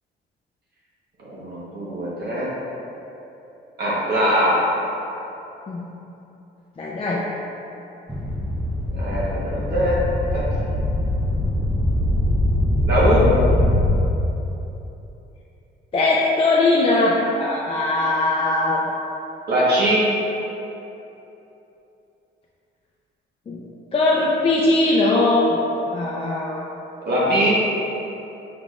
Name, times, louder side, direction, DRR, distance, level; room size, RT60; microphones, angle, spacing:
voice 1, 1.2-2.5 3.8-4.6 9.0-10.0 10.3-10.4 12.9-13.4 19.5-20.1 27.0-27.6, equal, 55° right, -7 dB, 1.1 m, -21 dB
voice 2, 6.8-7.2 15.9-18.8 23.5-23.6 23.9-26.6, left 2 dB, 30° left, -4 dB, 0.4 m, -20 dB
sound 1, 8.1-14.0, left 1 dB, 5° right, 0.8 m, -22 dB
4.8 x 3.9 x 2.4 m, 3.0 s
cardioid pair, 90°, 20 cm